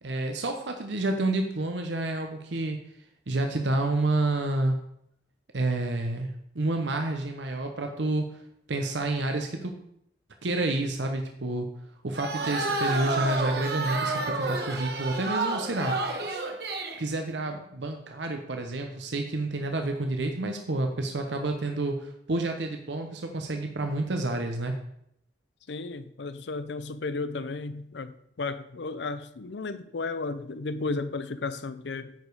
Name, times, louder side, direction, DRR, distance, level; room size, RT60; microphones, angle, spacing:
voice 1, 0.0-2.8 3.3-4.8 5.5-8.4 8.7-9.7 10.4-11.7 12.0-16.0 17.0-24.8, right 2 dB, 75° right, 0.9 m, -29 dB
sound 1, 12.1-17.0, right 2 dB, 60° right, 1.1 m, -30 dB
voice 2, 25.7-32.1, left 3 dB, 75° left, 0.6 m, -34 dB
9.4 x 5.1 x 4.8 m
head